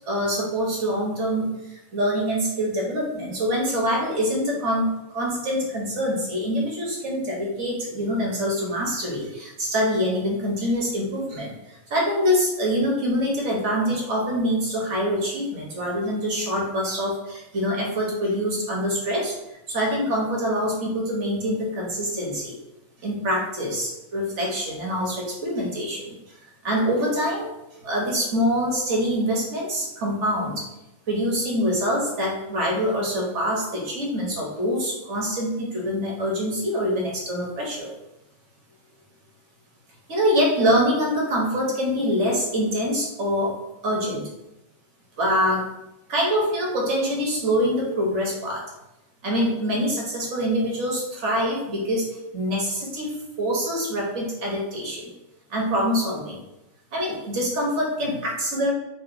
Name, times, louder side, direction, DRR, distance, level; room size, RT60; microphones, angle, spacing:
voice 1, 0.1-11.5 11.9-19.3 19.7-22.5 23.0-26.1 26.6-27.5 27.8-30.7 31.1-37.9 40.1-43.5 43.8-44.3 45.2-45.7 46.1-48.6 49.2-52.1 52.3-55.1 55.5-56.4 56.9-58.7, equal, 55° right, -2 dB, 1.1 m, -25 dB
4.0 x 2.1 x 2.5 m, 0.93 s
omnidirectional pair, 1.5 m